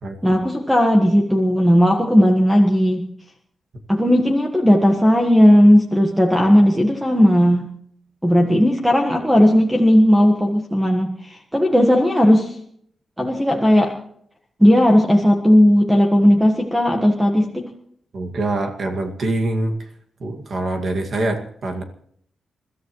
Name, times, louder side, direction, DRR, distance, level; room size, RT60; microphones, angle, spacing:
voice 1, 0.2-3.0 3.9-7.7 8.2-12.6 13.2-13.9 14.6-17.6, equal, 5° right, 2 dB, 1.5 m, -15 dB
voice 2, 18.1-19.9 20.2-21.8, right 2 dB, 50° right, 4 dB, 2.1 m, -24 dB
29.0 x 13.5 x 3.1 m, 0.65 s
wide cardioid pair, 150°, 0 cm